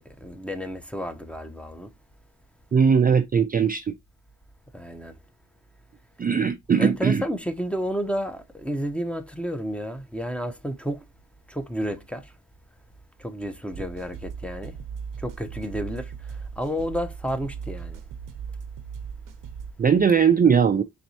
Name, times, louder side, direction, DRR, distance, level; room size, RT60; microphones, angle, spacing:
voice 1, 0.2-1.9 4.7-5.1 6.8-11.0 11.5-12.3 13.2-14.8 15.2-16.1 16.6-18.0, equal, 5° left, 0.7 m, -31 dB
voice 2, 2.7-4.0 6.2-7.2 19.8-20.8, right 6 dB, 25° right, 0.4 m, -19 dB
sound 1, 13.7-19.7, right 6 dB, 70° right, 0.7 m, -38 dB
4.3 x 3.1 x 2.7 m
cardioid pair, 75°, 33 cm